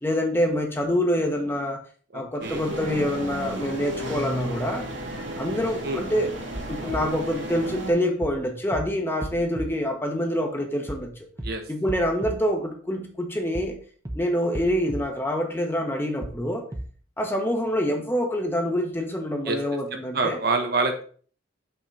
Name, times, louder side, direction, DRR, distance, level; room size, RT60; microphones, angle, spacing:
voice 1, 0.0-1.8 2.1-4.9 5.4-6.3 6.7-11.1 11.7-13.8 14.1-16.6 17.2-20.4, equal, 10° left, 0.9 m, -26 dB
voice 2, 2.1-2.6 5.8-6.0 11.4-11.6 19.5-19.6 19.9-21.0, right 3 dB, 55° right, 1.0 m, -26 dB
sound 1, 2.4-7.9, right 1 dB, 70° right, 1.9 m, -33 dB
sound 2, 6.6-7.0 8.2-8.4 8.7-8.8 9.2-9.7 10.9-11.1 11.4-11.5 11.9-12.3 13.6-13.8 14.1-14.2 14.5-15.0 16.2-16.4 16.7-16.8, right 1 dB, 15° right, 0.8 m, -34 dB
5.6 x 3.7 x 5.3 m
head